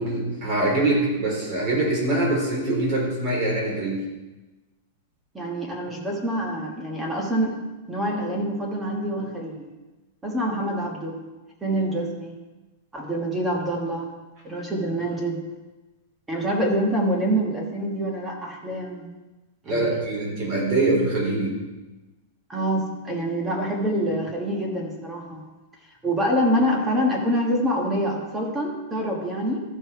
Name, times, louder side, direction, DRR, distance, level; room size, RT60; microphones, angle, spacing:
voice 1, 0.0-4.0 19.7-21.5, right 2 dB, 35° right, -3 dB, 3.6 m, -23 dB
voice 2, 5.3-7.6 7.9-9.7 10.2-11.2 11.6-12.4 12.9-14.1 14.4-15.4 16.3-19.1 19.7-20.0 22.5-25.4 26.0-29.6, equal, 10° right, -1 dB, 1.3 m, -26 dB
13.5 x 5.4 x 4.6 m, 1.1 s
supercardioid pair, 170°, 0 cm